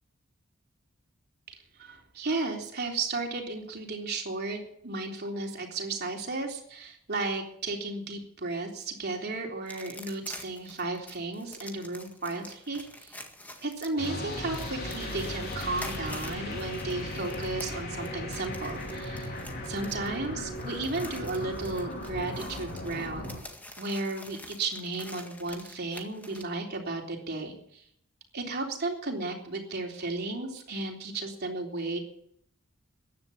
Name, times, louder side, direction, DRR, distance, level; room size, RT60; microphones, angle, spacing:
voice 1, 1.5-13.2 13.6-19.3 19.6-23.3 23.8-27.8 28.3-32.0, right 3 dB, 50° right, 1 dB, 3.6 m, -34 dB
sound 1, 9.7-26.4, left 1 dB, 10° left, 1.8 m, -47 dB
sound 2, 14.0-23.4, left 1 dB, 50° left, 4.1 m, -37 dB
15.0 x 10.5 x 7.2 m, 0.68 s
head